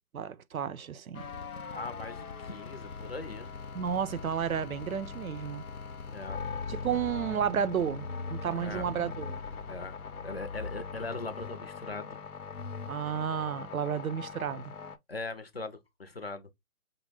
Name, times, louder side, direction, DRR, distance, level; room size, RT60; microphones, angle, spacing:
voice 1, 0.1-1.3 3.7-5.7 6.7-9.4 12.9-14.7, right 8 dB, 75° right, 0.6 m, -32 dB
sound 1, 1.1-15.0, left 5 dB, 85° left, 0.8 m, -41 dB
voice 2, 1.7-3.5 6.1-6.4 8.6-8.8 9.7-10.0 10.2-12.2 15.1-16.5, left 3 dB, 45° left, 0.6 m, -40 dB
5.4 x 2.0 x 3.4 m
hypercardioid pair, 175°, 43 cm